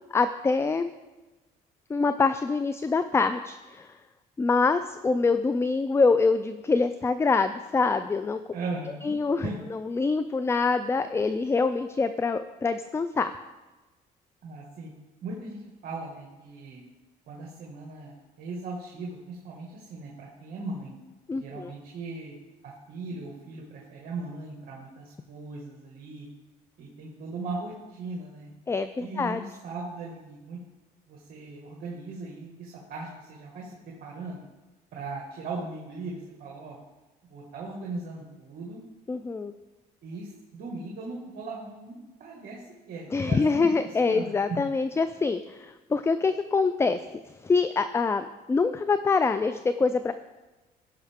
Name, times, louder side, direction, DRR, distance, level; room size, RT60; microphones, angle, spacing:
voice 1, 0.1-0.9 1.9-3.9 4.4-8.4 9.0-13.3 21.3-21.7 28.7-29.4 39.1-39.5 43.1-47.0 47.4-50.1, left 4 dB, 15° left, 11 dB, 0.3 m, -25 dB
voice 2, 8.5-9.1 9.4-9.6 14.4-14.9 15.2-16.8 17.3-20.9 21.4-22.4 22.9-26.3 26.8-28.5 29.0-30.6 31.1-34.4 34.9-36.8 37.3-38.8 40.0-44.6, right 3 dB, 60° right, -2 dB, 1.9 m, -38 dB
16.0 x 5.7 x 3.6 m, 1.2 s
cardioid pair, 110°, 17 cm